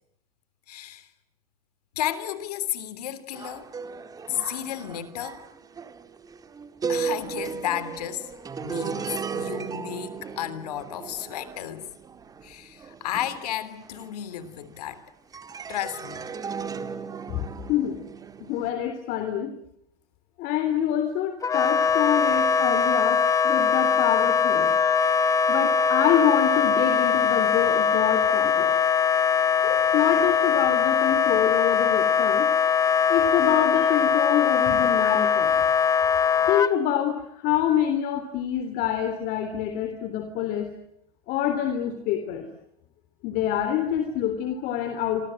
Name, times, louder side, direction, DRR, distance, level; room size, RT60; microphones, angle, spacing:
voice 1, 0.7-1.1 1.9-3.7 4.3-5.5 6.9-8.3 8.6-11.9 12.4-15.0 15.7-16.3, left 11 dB, 90° left, 3.2 m, -33 dB
sound 1, 3.3-14.9 15.3-18.7, right 6 dB, 20° right, 1.9 m, -36 dB
voice 2, 17.3-18.0 18.4-19.5 20.4-24.7 25.5-28.7 29.6-32.5 33.1-35.6 36.5-40.7 41.3-42.5 43.2-45.3, left 10 dB, 50° left, 3.5 m, -26 dB
Wind instrument woodwind instrument, 21.4-36.7, left 7 dB, 15° left, 1.0 m, -21 dB
27.0 x 25.5 x 7.8 m
supercardioid pair, 135°, 19 cm